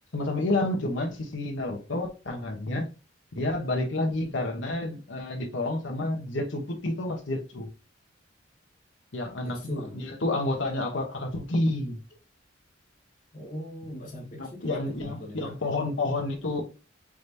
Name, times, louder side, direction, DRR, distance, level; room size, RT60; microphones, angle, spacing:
voice 1, 0.1-2.9 3.3-7.7 9.1-9.6 9.9-12.0 14.3-16.6, left 2 dB, 70° left, 1.0 m, -29 dB
voice 2, 9.4-10.1 13.3-15.7, left 1 dB, 35° left, 1.9 m, -38 dB
4.8 x 3.4 x 2.6 m
head